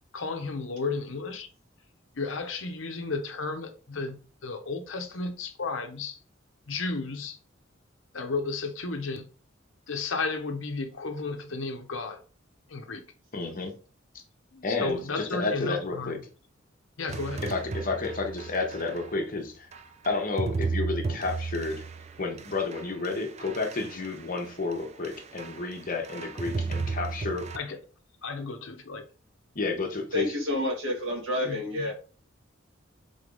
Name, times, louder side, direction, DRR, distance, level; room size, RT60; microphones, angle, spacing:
voice 1, 0.1-1.5 2.2-4.2 4.4-6.2 6.7-7.4 8.1-9.2 9.9-12.2 12.7-13.0 14.5-16.2 17.0-17.4 27.5-27.8 28.2-29.0 31.4-31.9, left 3 dB, 80° left, 0.8 m, -33 dB
voice 2, 13.3-13.7 14.6-16.2 17.4-19.7 20.0-21.8 22.2-27.5 29.5-30.4, left 3 dB, 45° left, 1.0 m, -31 dB
sound 1, 17.1-19.1 19.7-24.7 25.0-25.8 26.0-27.6, right 4 dB, 35° right, 0.4 m, -34 dB
voice 3, 30.1-31.9, left 1 dB, 80° right, 1.6 m, -29 dB
4.0 x 3.4 x 3.9 m
head